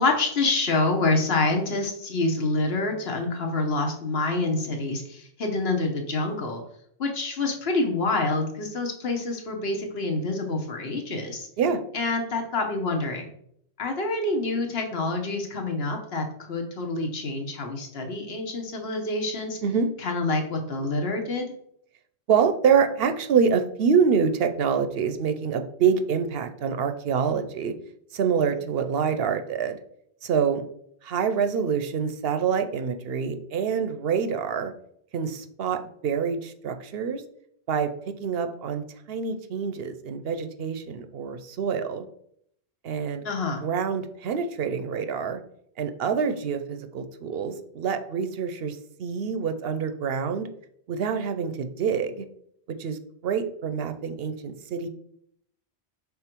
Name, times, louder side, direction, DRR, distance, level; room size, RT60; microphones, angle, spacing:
voice 1, 0.0-6.6 7.0-11.5 11.9-13.3 13.8-19.6 20.0-21.5 43.2-43.6, left 2 dB, 65° left, 3 dB, 1.3 m, -27 dB
voice 2, 22.3-27.7 28.1-29.8 30.2-30.6 31.0-34.7 35.1-37.2 37.7-42.1 42.8-43.2 43.6-45.4 45.8-50.5 50.9-52.3 52.7-54.9, right 6 dB, 70° right, 8 dB, 0.8 m, -26 dB
5.6 x 3.8 x 4.4 m, 0.70 s
omnidirectional pair, 1.1 m